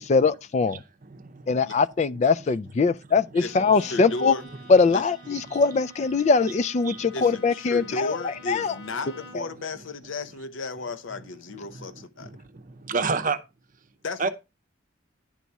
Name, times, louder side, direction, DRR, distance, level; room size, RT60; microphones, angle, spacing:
voice 1, 0.0-0.8 1.5-4.3 4.7-8.7 9.3-9.4, left 4 dB, 35° left, 0.3 m, -22 dB
voice 2, 0.7-1.7 3.9-4.0 5.3-5.6 6.8-7.1 11.6-13.4 14.2-14.3, right 4 dB, 40° right, 0.7 m, -31 dB
voice 3, 3.4-4.5 4.9-5.0 7.1-12.3 14.0-14.3, left 3 dB, 75° left, 0.7 m, -34 dB
Bowed string instrument, 3.4-9.6, equal, 60° left, 2.1 m, -48 dB
10.0 x 4.1 x 4.6 m
head